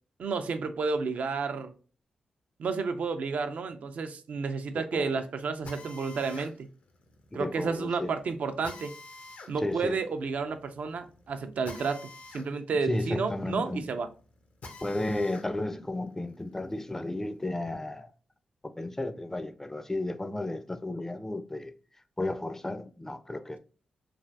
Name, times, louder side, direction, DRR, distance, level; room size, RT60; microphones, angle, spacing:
voice 1, 0.2-1.7 2.6-6.7 7.3-8.9 9.5-12.0 12.3-14.1, right 4 dB, 65° right, 0.4 m, -31 dB
Drill, 5.7-15.5 15.9-17.5, left 3 dB, 70° left, 0.6 m, -49 dB
voice 2, 7.3-8.1 9.6-10.0 12.9-13.9 14.8-18.1 18.6-21.7 22.2-23.6, left 2 dB, 15° left, 0.4 m, -33 dB
3.2 x 2.5 x 2.5 m
supercardioid pair, 40°, 3 cm